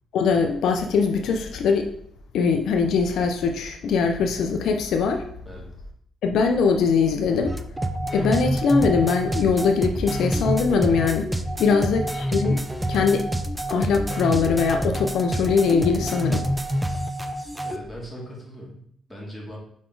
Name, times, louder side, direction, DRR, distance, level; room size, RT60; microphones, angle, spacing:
voice 1, 0.1-1.9 2.3-5.2 6.2-7.5 8.1-11.3 11.6-12.6 12.9-13.3 13.7-16.5, left 5 dB, 75° left, 5 dB, 0.5 m, -21 dB
sound 1, 7.5-17.8, right 1 dB, 10° right, 0.5 m, -27 dB
voice 2, 17.6-19.6, equal, 10° left, -3 dB, 2.3 m, -40 dB
5.0 x 4.1 x 4.5 m, 0.68 s
cardioid pair, 90°, 0 cm